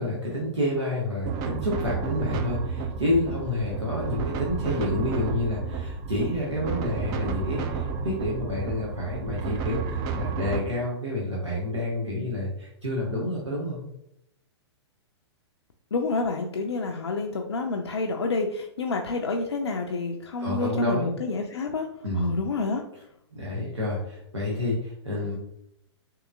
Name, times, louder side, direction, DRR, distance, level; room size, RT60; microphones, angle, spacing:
voice 1, 0.0-13.8 20.4-21.1 22.0-22.4 23.3-25.4, left 1 dB, 80° right, -5 dB, 0.9 m, -29 dB
sound 1, 1.2-10.6, right 5 dB, 25° right, 0.4 m, -31 dB
voice 2, 15.9-21.9 22.2-22.8, left 3 dB, 70° left, 2 dB, 0.4 m, -28 dB
3.7 x 2.9 x 2.4 m, 0.77 s
figure-of-eight pair, 105°, 14 cm